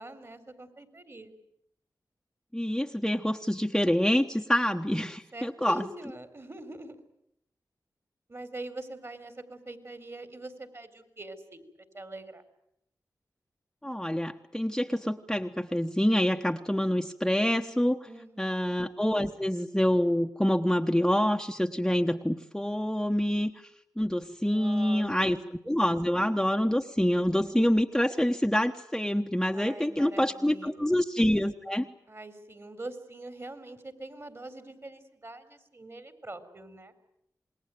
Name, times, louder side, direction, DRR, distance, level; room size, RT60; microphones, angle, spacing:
voice 1, 0.0-1.4 5.3-7.0 8.3-11.6 11.9-12.4 18.1-18.8 24.5-25.4 29.5-30.9 32.1-36.9, right 2 dB, 40° right, 10 dB, 4.1 m, -44 dB
voice 2, 2.5-5.8 13.8-18.0 18.4-23.5 24.0-31.9, equal, 5° left, 4 dB, 1.2 m, -26 dB
27.5 x 20.5 x 9.3 m, 0.77 s
cardioid pair, 45°, 7 cm